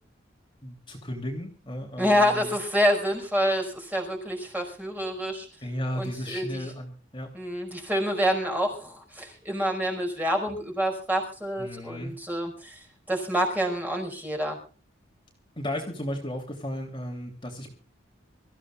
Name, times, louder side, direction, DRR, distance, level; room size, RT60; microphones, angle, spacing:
voice 1, 0.6-2.5 5.6-7.3 11.6-12.1 15.6-17.7, equal, 25° left, 0 dB, 3.2 m, -34 dB
voice 2, 2.0-5.5 5.9-6.7 7.3-14.6, equal, 10° right, 2 dB, 5.1 m, -27 dB
26.5 x 15.0 x 2.4 m, 0.37 s
head